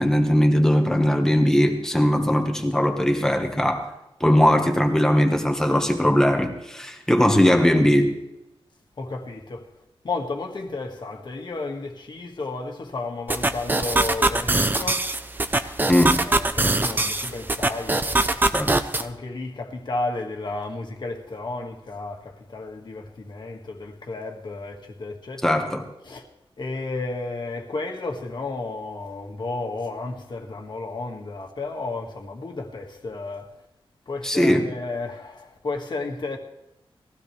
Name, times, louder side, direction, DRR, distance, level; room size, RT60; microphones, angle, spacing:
voice 1, 0.0-3.9 4.2-8.2 15.9-16.2 18.5-18.8 25.4-25.8 34.2-34.7, equal, 5° left, 1.5 m, -20 dB
voice 2, 9.0-9.6 10.0-15.1 15.8-15.9 16.2-18.4 19.0-25.6 26.1-26.2 26.6-33.5 34.1-36.4, left 3 dB, 50° left, 1.9 m, -32 dB
sound 1, 13.3-19.0, right 2 dB, 20° right, 0.7 m, -23 dB
20.5 x 15.5 x 3.3 m
wide cardioid pair, 165°, 10 cm